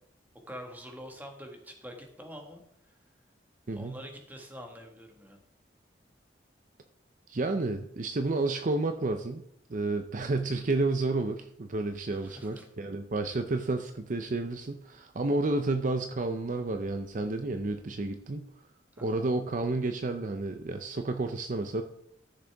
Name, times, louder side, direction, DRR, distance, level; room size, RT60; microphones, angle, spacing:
voice 1, 0.5-2.9 3.6-5.4 12.2-12.7 18.9-19.2, equal, 10° right, 3 dB, 1.5 m, -46 dB
voice 2, 3.7-4.0 7.3-9.4 9.7-18.5 19.0-21.8, right 2 dB, 45° right, 6 dB, 0.6 m, -31 dB
14.0 x 6.6 x 3.5 m, 0.75 s
head